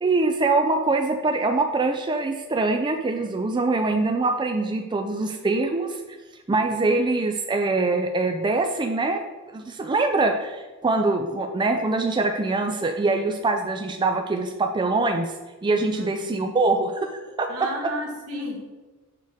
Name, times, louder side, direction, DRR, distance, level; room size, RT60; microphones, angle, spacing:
voice 1, 0.0-6.0 6.5-15.3 15.6-17.1 17.4-17.5, right 3 dB, 20° right, 5 dB, 0.4 m, -23 dB
voice 2, 15.9-16.5 17.2-18.8, equal, 75° right, 0 dB, 1.5 m, -34 dB
6.7 x 6.2 x 3.5 m, 1.2 s
head